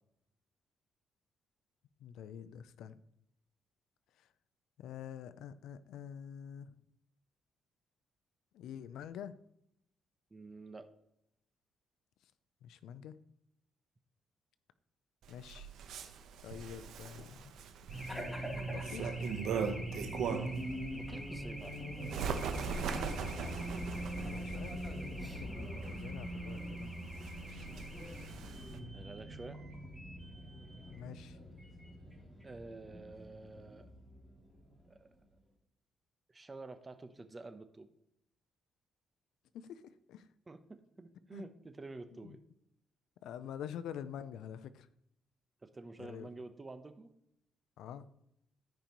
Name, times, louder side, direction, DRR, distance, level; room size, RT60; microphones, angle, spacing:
voice 1, 2.0-3.0 4.2-4.3 4.8-6.7 8.5-9.3 12.6-13.2 15.3-15.7 16.4-17.5 18.1-19.3 24.2-26.9 30.9-31.4 39.5-39.8 40.1-40.3 41.3-41.4 42.2-42.4 43.2-44.9 46.0-46.3 47.8-48.0, left 9 dB, 85° left, 13 dB, 0.5 m, -47 dB
voice 2, 10.3-10.9 20.4-20.5 20.9-21.8 28.9-29.6 32.4-33.9 34.9-35.1 36.3-37.9 40.5-42.4 45.6-47.1, right 3 dB, 25° right, 9 dB, 0.9 m, -49 dB
Bird, 15.2-20.7 21.1-28.8, right 6 dB, 80° right, 0.9 m, -41 dB
Race car auto racing / Alarm, 17.9-34.8, right 1 dB, 5° left, 3.2 m, -42 dB
14.5 x 5.2 x 3.1 m, 0.77 s
cardioid pair, 90°, 0 cm